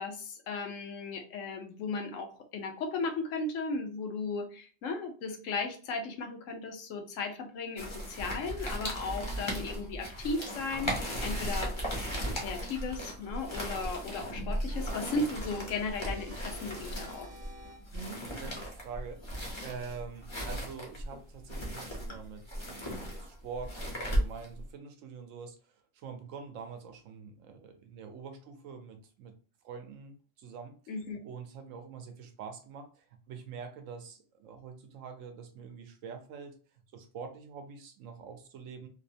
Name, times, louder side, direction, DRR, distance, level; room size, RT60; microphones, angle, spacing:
voice 1, 0.0-11.7 12.3-17.3 30.9-31.2, left 3 dB, 75° left, 5 dB, 1.0 m, -36 dB
sound 1, 7.8-24.6, equal, 30° left, 0.6 m, -36 dB
sound 2, 14.7-18.1, right 1 dB, 45° right, 0.5 m, -48 dB
voice 2, 17.9-22.8 23.1-25.6 25.9-29.3 29.6-30.9 31.2-36.5 36.9-38.9, right 6 dB, 80° right, 6 dB, 0.9 m, -45 dB
2.9 x 2.0 x 2.6 m, 0.40 s
omnidirectional pair, 1.3 m